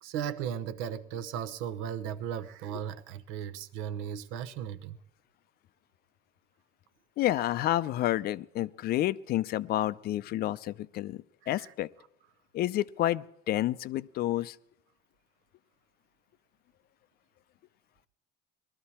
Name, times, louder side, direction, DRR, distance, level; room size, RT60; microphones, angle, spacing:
voice 1, 0.0-5.0 11.4-11.7, right 9 dB, 75° right, 0.9 m, -36 dB
voice 2, 7.2-11.9 12.5-14.6, left 14 dB, 50° left, 0.5 m, -30 dB
19.5 x 13.0 x 4.3 m
cardioid pair, 120°, 21 cm